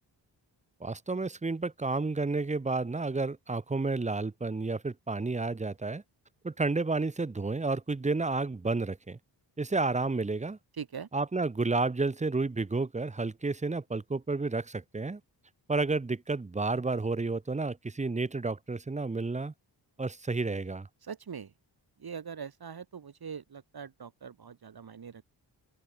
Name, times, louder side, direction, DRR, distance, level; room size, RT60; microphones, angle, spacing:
voice 1, 0.8-6.0 6.4-9.2 9.6-10.6 11.1-15.2 15.7-19.5 20.0-20.9, right 3 dB, 15° right, 0.7 m, -31 dB
voice 2, 10.8-11.1 21.1-21.5 22.0-25.2, right 6 dB, 55° right, 2.1 m, -42 dB
open air
wide cardioid pair, 135°, 45 cm